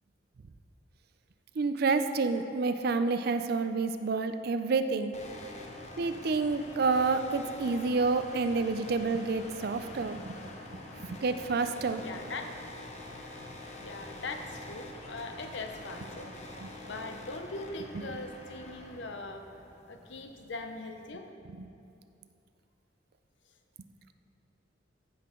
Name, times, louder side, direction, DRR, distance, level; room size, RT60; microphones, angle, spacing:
voice 1, 1.6-5.1 6.0-10.4 11.1-12.0 16.6-16.7, right 4 dB, 55° right, 9 dB, 0.4 m, -29 dB
sound 1, 5.1-21.1, left 1 dB, 35° left, 0.9 m, -46 dB
voice 2, 12.0-12.5 13.8-16.3 16.8-19.5 19.9-21.3, left 3 dB, 70° left, 5 dB, 0.7 m, -41 dB
14.0 x 5.7 x 3.7 m, 2.6 s
head